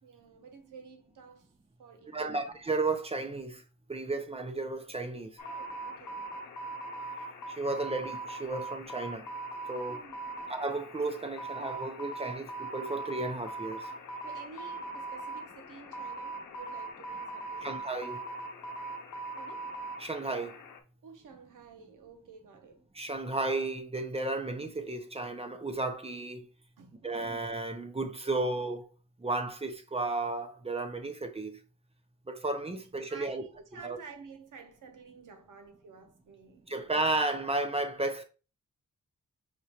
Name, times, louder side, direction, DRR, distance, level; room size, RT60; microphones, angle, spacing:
voice 1, 0.0-1.5 1.8-2.5 5.4-6.2 9.9-10.5 14.2-17.8 19.4-19.7 21.0-22.9 26.8-27.4 33.1-37.2, right 5 dB, 90° right, 0.9 m, -51 dB
voice 2, 2.1-3.6 3.9-5.4 7.5-9.3 9.7-10.0 10.5-13.9 17.6-18.2 20.0-20.6 22.9-26.5 27.0-28.9 29.2-31.6 32.3-33.4 33.8-34.0 36.7-38.2, right 2 dB, 20° right, 0.6 m, -33 dB
sound 1, 5.4-20.8, right 2 dB, 80° left, 0.8 m, -41 dB
5.0 x 3.0 x 2.9 m
wide cardioid pair, 125°, 31 cm